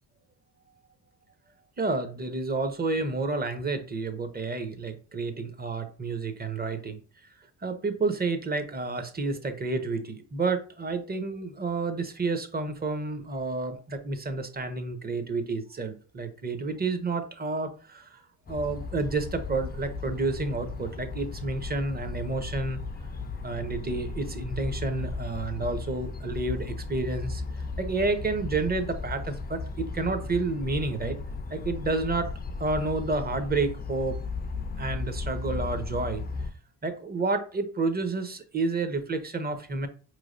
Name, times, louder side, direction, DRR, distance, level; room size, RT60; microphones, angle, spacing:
voice 1, 1.8-7.0 7.6-18.2 18.5-22.8 23.4-31.2 31.5-32.3 32.6-34.2 34.8-36.2 36.8-39.9, right 3 dB, 20° right, 0.6 m, -30 dB
sound 1, 18.5-36.5, left 4 dB, 20° left, 0.4 m, -36 dB
4.6 x 3.1 x 2.5 m
cardioid pair, 85°, 44 cm